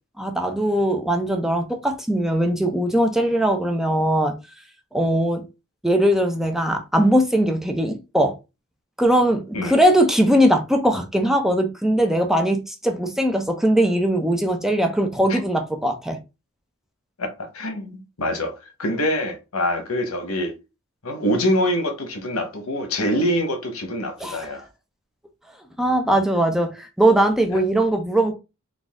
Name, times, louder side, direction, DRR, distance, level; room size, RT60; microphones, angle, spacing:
voice 1, 0.2-4.3 4.9-5.4 5.8-8.3 9.0-16.2 24.2-24.5 25.8-28.3, right 1 dB, ahead, 0.5 m, -20 dB
voice 2, 17.2-17.9 18.2-18.5 18.8-20.5 21.0-24.6 27.5-27.6, equal, 80° left, 1.0 m, -24 dB
4.0 x 2.4 x 3.6 m
head